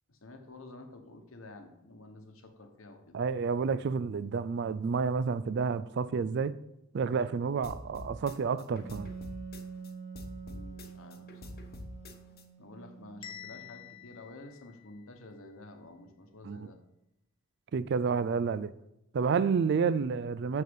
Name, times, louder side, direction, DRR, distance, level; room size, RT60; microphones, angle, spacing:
voice 1, 0.1-3.1 10.4-11.6 12.6-16.8, left 2 dB, 70° left, 1.2 m, -50 dB
voice 2, 3.1-6.6 6.9-9.1 16.4-16.7 17.7-18.7 19.1-20.6, right 5 dB, 55° right, 0.3 m, -30 dB
sound 1, 7.6-9.9 10.2-12.4, left 1 dB, 45° left, 1.0 m, -45 dB
Wind instrument woodwind instrument, 8.8-14.2, right 6 dB, 30° right, 1.3 m, -47 dB
Bell, 13.2-15.3, left 10 dB, 25° left, 0.5 m, -49 dB
6.6 x 6.6 x 5.3 m
head